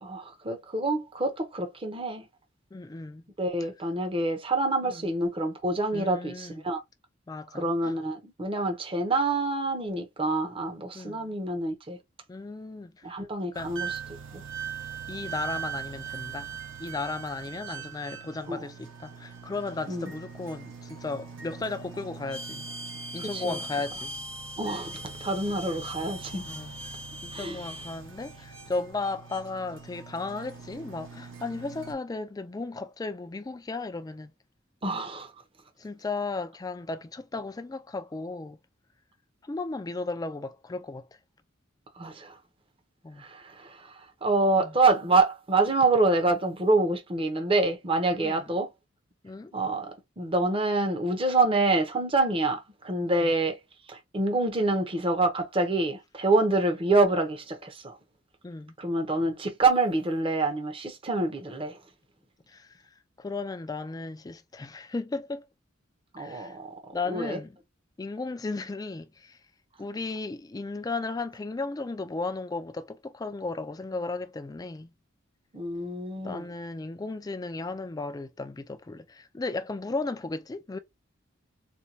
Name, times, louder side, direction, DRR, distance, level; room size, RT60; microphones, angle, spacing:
voice 1, 0.0-2.3 3.4-6.8 7.5-12.0 13.0-14.0 14.3-14.4 18.5-18.6 19.9-20.1 23.2-23.6 24.6-26.4 27.3-27.6 34.8-35.3 42.0-42.4 43.2-43.9 44.2-48.7 49.5-53.6 53.9-58.0 58.8-61.8 66.1-66.7 67.1-67.4 75.5-76.4, right 2 dB, 30° right, 0.7 m, -26 dB
voice 2, 2.7-3.2 4.8-5.1 5.9-6.6 7.3-7.9 10.9-11.4 12.3-13.2 13.5-13.7 15.1-16.5 16.8-22.7 23.1-24.2 26.5-34.3 35.8-38.6 39.4-41.1 43.0-43.2 44.6-44.7 48.2-48.4 49.2-49.5 53.2-53.3 58.4-58.7 62.5-65.5 66.2-66.6 66.9-67.5 68.0-69.4 69.8-74.9 76.2-80.8, left 3 dB, 20° left, 0.3 m, -35 dB
sound 1, 13.5-31.9, right 5 dB, 90° right, 1.4 m, -40 dB
4.3 x 2.2 x 2.7 m
head